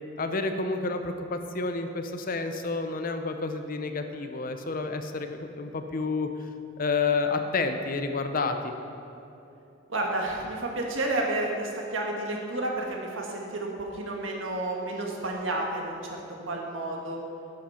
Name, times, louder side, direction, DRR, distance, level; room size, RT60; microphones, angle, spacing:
voice 1, 0.2-6.3 6.8-8.7, left 4 dB, 45° left, 7 dB, 0.7 m, -29 dB
voice 2, 9.9-17.2, right 2 dB, 75° right, 0 dB, 1.7 m, -31 dB
10.5 x 7.7 x 5.7 m, 2.8 s
head